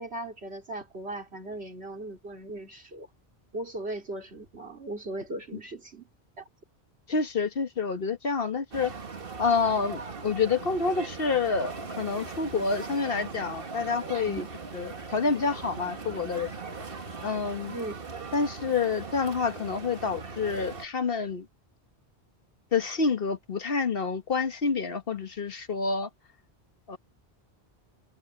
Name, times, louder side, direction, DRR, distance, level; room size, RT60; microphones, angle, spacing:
voice 1, 0.0-3.1 3.5-6.0 6.4-6.5 14.3-14.4 17.7-18.0, right 2 dB, 80° right, 3.9 m, -38 dB
voice 2, 7.1-8.9 9.4-14.5 14.7-16.5 17.2-17.8 18.3-21.5 22.7-26.1 26.9-27.0, left 4 dB, 60° left, 1.5 m, -28 dB
sound 1, 8.7-20.9, right 4 dB, 60° right, 1.8 m, -40 dB
omnidirectional pair, 1.1 m